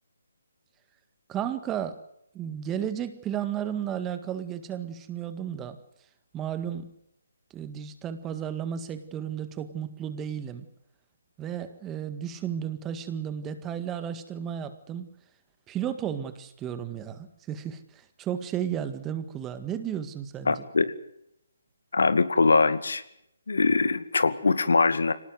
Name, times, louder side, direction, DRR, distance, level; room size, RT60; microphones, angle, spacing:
voice 1, 1.3-2.0 2.3-5.8 6.3-6.9 7.5-10.7 11.4-15.1 15.7-20.6, right 9 dB, 15° right, 11 dB, 1.8 m, -33 dB
voice 2, 20.5-20.9 21.9-23.0 23.5-25.1, left 4 dB, 75° left, 13 dB, 2.2 m, -22 dB
25.0 x 19.0 x 8.1 m, 0.78 s
figure-of-eight pair, 150°, 0 cm